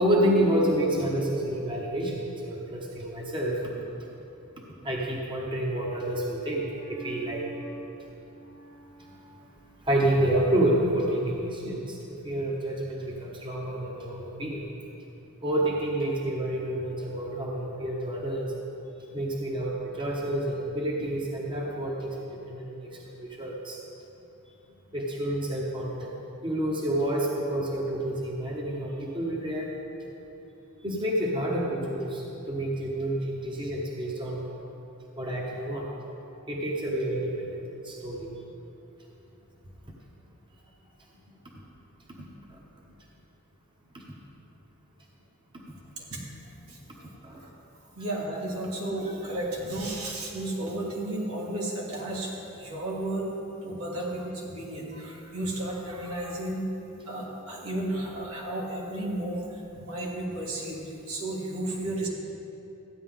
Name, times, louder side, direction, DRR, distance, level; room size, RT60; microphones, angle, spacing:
voice 1, 0.0-3.9 4.8-9.5 9.8-14.6 15.4-18.5 19.1-23.8 24.9-26.1 26.4-29.7 30.8-34.4 35.2-35.9 36.5-38.3 42.1-42.6 43.9-44.0 47.2-47.4, right 1 dB, 20° right, -2 dB, 1.0 m, -29 dB
voice 2, 48.0-53.3 53.6-56.6 57.1-62.1, right 1 dB, 80° right, -4 dB, 2.3 m, -33 dB
14.0 x 9.5 x 3.7 m, 3.0 s
head